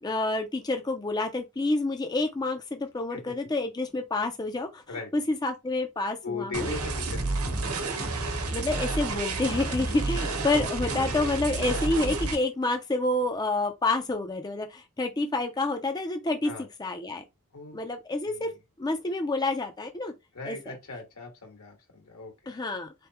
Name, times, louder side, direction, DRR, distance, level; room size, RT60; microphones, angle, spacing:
voice 1, 0.0-4.8 5.1-6.7 8.2-16.5 16.8-17.2 17.7-18.5 18.8-20.1 20.5-20.6 22.5-22.9, left 2 dB, 20° left, 0.4 m, -28 dB
voice 2, 6.2-7.4 16.4-16.7 17.5-17.8 18.2-18.5 20.3-22.3, left 3 dB, 80° left, 1.7 m, -38 dB
sound 1, 6.5-12.3, right 3 dB, 75° right, 1.0 m, -30 dB
3.9 x 3.4 x 2.9 m
head